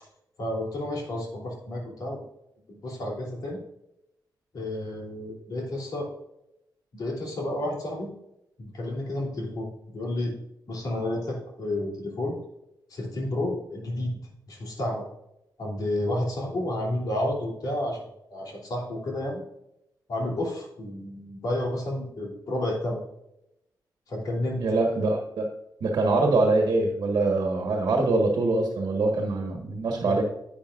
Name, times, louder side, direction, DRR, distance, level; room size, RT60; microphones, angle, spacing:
voice 1, 0.4-2.2 2.7-3.6 4.5-6.1 6.9-8.1 8.6-9.7 9.9-10.3 10.7-12.4 12.9-14.1 14.5-15.0 15.6-18.0 18.3-19.4 20.1-23.0 24.1-24.6 30.0-30.2, left 1 dB, 55° left, -1 dB, 3.2 m, -31 dB
voice 2, 24.6-25.4 25.8-30.2, right 2 dB, 60° right, 2 dB, 1.5 m, -24 dB
10.5 x 8.7 x 2.6 m, 0.84 s
wide cardioid pair, 150°, 8 cm